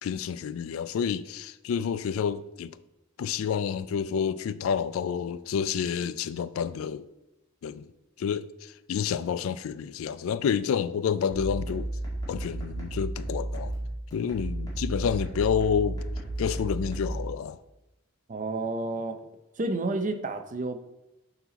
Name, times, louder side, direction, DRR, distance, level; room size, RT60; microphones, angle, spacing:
voice 1, 0.0-2.8 3.2-7.1 7.6-7.8 8.2-11.9 12.3-13.7 14.1-16.0 16.4-17.6, left 7 dB, 75° left, 0.3 m, -29 dB
sound 1, 11.3-17.3, right 1 dB, 20° left, 2.0 m, -33 dB
voice 2, 18.3-19.2 19.6-20.8, right 2 dB, 40° right, 0.6 m, -30 dB
6.9 x 4.1 x 4.0 m
head